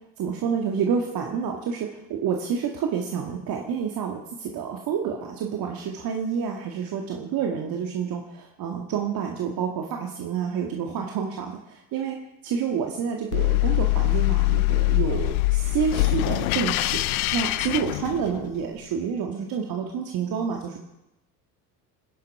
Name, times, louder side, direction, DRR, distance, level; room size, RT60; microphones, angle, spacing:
voice 1, 0.2-12.2 12.4-17.0 17.3-20.8, right 7 dB, 50° right, 2 dB, 2.0 m, -28 dB
sound 1, 13.3-18.6, left 20 dB, 65° left, 0.7 m, -23 dB
26.5 x 10.5 x 4.9 m, 0.91 s
figure-of-eight pair, 65°, 46 cm